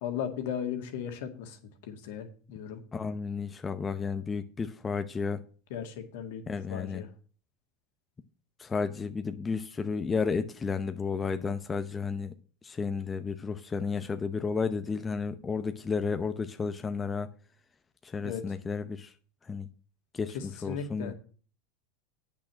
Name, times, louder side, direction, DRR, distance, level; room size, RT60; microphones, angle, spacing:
voice 1, 0.0-1.6 1.9-2.3 2.5-2.8 5.7-6.4 6.7-7.1 18.2-18.4 20.3-21.1, left 8 dB, 70° left, 2.0 m, -36 dB
voice 2, 2.9-5.4 6.5-7.0 8.6-12.3 12.6-17.3 18.1-19.1 19.5-19.7 20.1-21.1, left 5 dB, 20° left, 0.8 m, -32 dB
8.5 x 6.1 x 7.6 m
hypercardioid pair, 105°, 0 cm